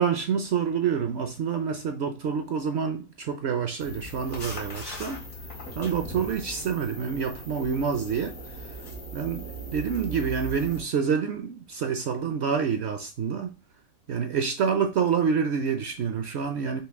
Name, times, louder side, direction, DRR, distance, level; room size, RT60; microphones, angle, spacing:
voice 1, 0.0-5.2 5.8-8.4 9.1-13.5 14.1-16.8, right 6 dB, 65° right, 0.7 m, -27 dB
sound 1, 3.8-10.8, right 1 dB, 70° left, 1.9 m, -39 dB
5.3 x 2.4 x 3.4 m
omnidirectional pair, 1.4 m